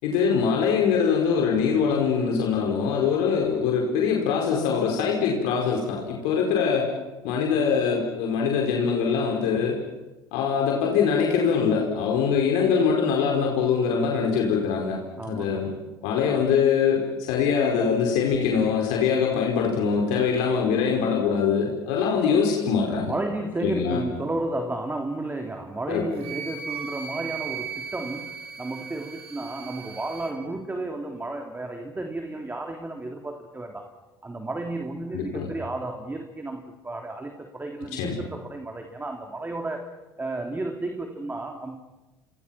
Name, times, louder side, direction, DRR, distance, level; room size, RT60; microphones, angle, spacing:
voice 1, 0.0-6.9 7.2-9.8 10.3-15.0 15.2-15.7 16.0-23.1 23.6-24.0 25.9-26.1 35.1-35.5 38.0-38.2, left 6 dB, 70° left, 0 dB, 4.9 m, -23 dB
voice 2, 15.2-15.7 23.0-33.9 34.2-41.8, right 2 dB, 15° right, 3 dB, 3.3 m, -32 dB
Wind instrument woodwind instrument, 26.2-30.4, right 7 dB, 55° right, 5.2 m, -37 dB
30.0 x 27.0 x 5.9 m, 1.1 s
hypercardioid pair, 70°, 12 cm